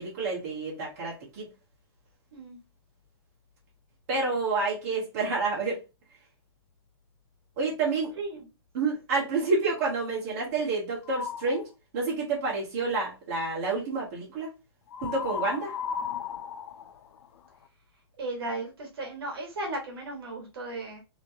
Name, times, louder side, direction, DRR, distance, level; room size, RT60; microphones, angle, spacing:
voice 1, 0.0-1.5 4.1-5.8 7.6-8.1 8.7-11.7 11.9-14.5 15.0-15.7, right 3 dB, 35° right, 1.4 m, -29 dB
voice 2, 8.1-8.5 10.4-10.5 18.2-21.0, right 2 dB, 65° right, 1.4 m, -36 dB
sound 1, 11.0-11.6 14.9-17.7, left 7 dB, 90° left, 0.4 m, -35 dB
3.2 x 3.0 x 2.7 m
hypercardioid pair, 175°, 14 cm